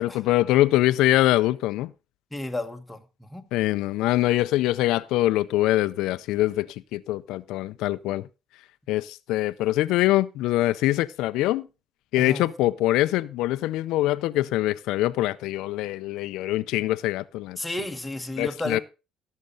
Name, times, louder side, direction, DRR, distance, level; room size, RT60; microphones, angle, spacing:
voice 1, 0.0-1.9 3.5-8.3 8.9-11.7 12.1-17.6 18.4-18.8, left 16 dB, 85° left, 0.5 m, -24 dB
voice 2, 2.3-3.5 12.2-12.4 17.6-18.8, left 1 dB, 5° left, 1.3 m, -33 dB
17.0 x 6.6 x 3.9 m
cardioid pair, 130°, 0 cm